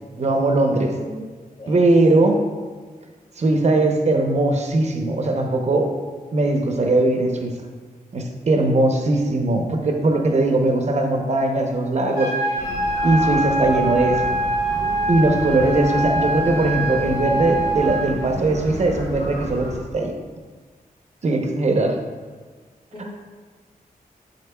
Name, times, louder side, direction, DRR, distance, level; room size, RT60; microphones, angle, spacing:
voice 1, 0.2-0.9 1.7-2.4 3.4-5.9 6.3-7.5 8.1-12.3 13.0-14.2 15.1-20.1 21.2-22.0 23.0-23.1, right 2 dB, 45° right, 3 dB, 0.8 m, -20 dB
voice 2, 1.0-1.3 1.6-1.9 22.9-23.1, left 1 dB, 30° left, 1 dB, 0.8 m, -36 dB
sound 1, 12.2-18.1, right 2 dB, 70° left, 1.7 m, -24 dB
sound 2, 12.6-19.8, equal, 45° left, 1.4 m, -32 dB
7.9 x 6.7 x 2.3 m, 1.4 s
wide cardioid pair, 160°, 16 cm